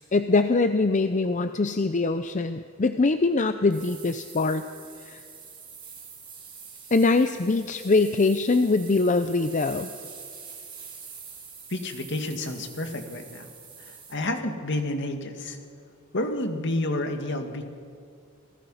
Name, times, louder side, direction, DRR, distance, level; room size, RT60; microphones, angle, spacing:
voice 1, 0.1-4.7 5.0-5.2 6.9-10.0, left 3 dB, 40° left, 10 dB, 0.6 m, -23 dB
sound 1, 3.7-14.1, right 6 dB, 25° right, 4.0 m, -45 dB
voice 2, 11.7-13.5 13.8-15.6 16.1-17.7, left 1 dB, 60° left, 5 dB, 2.1 m, -30 dB
28.5 x 18.5 x 5.7 m, 2.2 s
head